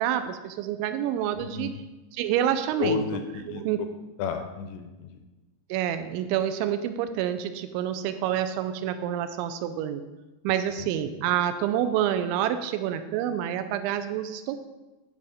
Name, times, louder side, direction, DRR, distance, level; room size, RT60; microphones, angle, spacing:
voice 1, 0.0-1.7 2.1-3.0 3.5-3.9 5.7-10.0 10.4-14.6, right 10 dB, 90° right, 9 dB, 3.0 m, -28 dB
voice 2, 2.8-3.7 4.2-5.1 10.8-10.9, left 6 dB, 80° left, 7 dB, 2.6 m, -31 dB
11.0 x 4.2 x 4.9 m, 1.1 s
omnidirectional pair, 5.3 m